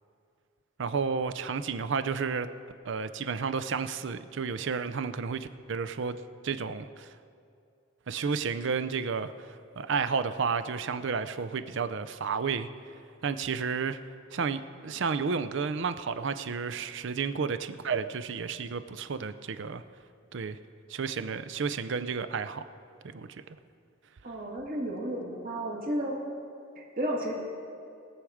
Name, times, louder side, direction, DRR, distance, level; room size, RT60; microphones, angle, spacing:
voice 1, 0.8-2.5 2.8-7.1 8.1-9.3 9.8-12.7 13.2-14.0 14.3-19.8 20.3-20.6 20.9-22.6 23.0-23.3, right 5 dB, 65° right, 12 dB, 0.5 m, -31 dB
voice 2, 24.2-26.2 26.8-27.3, right 1 dB, 45° right, -2 dB, 1.9 m, -32 dB
20.5 x 7.2 x 4.9 m, 2.5 s
head